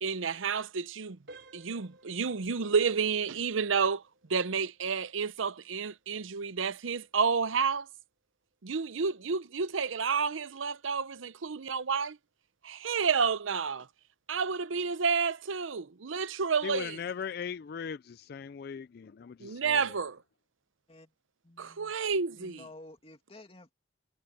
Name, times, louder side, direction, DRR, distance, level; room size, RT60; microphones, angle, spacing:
voice 1, 0.0-1.2 1.5-4.0 4.3-7.9 8.6-12.2 12.6-13.9 14.3-17.0 19.4-20.2 21.6-22.6, right 5 dB, 85° right, 0.7 m, -30 dB
sound 1, 1.3-11.9 12.3-12.5 13.1-13.2 13.7-13.9, right 2 dB, 55° right, 4.8 m, -60 dB
voice 2, 16.6-19.8, left 7 dB, 50° left, 0.4 m, -39 dB
voice 3, 21.4-21.9 22.3-23.8, left 2 dB, 30° left, 2.5 m, -52 dB
head